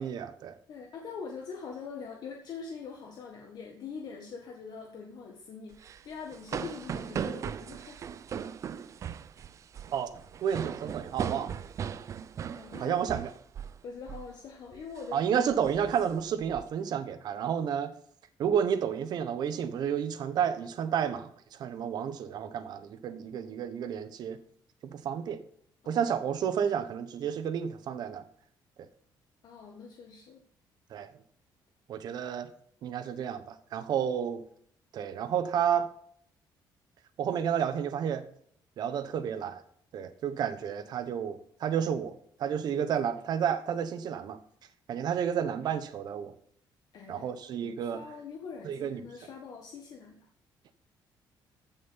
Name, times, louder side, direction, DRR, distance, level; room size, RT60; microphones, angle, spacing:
voice 1, 0.0-0.6 9.9-10.1 10.4-11.5 12.8-13.3 15.1-17.9 18.4-24.4 24.8-25.4 25.9-28.2 30.9-31.1 31.9-32.5 32.8-34.4 34.9-35.9 37.2-38.2 38.8-39.6 39.9-42.1 42.4-44.4 44.9-46.3 47.1-48.0 48.6-49.0, right 8 dB, 55° right, 1.2 m, -31 dB
voice 2, 0.7-5.8 6.0-8.0 12.5-13.0 13.8-15.3 25.1-25.3 25.8-26.0 29.4-30.4 46.9-47.3 47.6-50.3, left 5 dB, 55° left, 1.6 m, -43 dB
sound 1, 5.7-13.8 14.1-14.4 14.7-15.1 15.5-16.6, right 8 dB, 40° right, 0.5 m, -38 dB
15.0 x 6.4 x 5.7 m
cardioid pair, 160°, 8 cm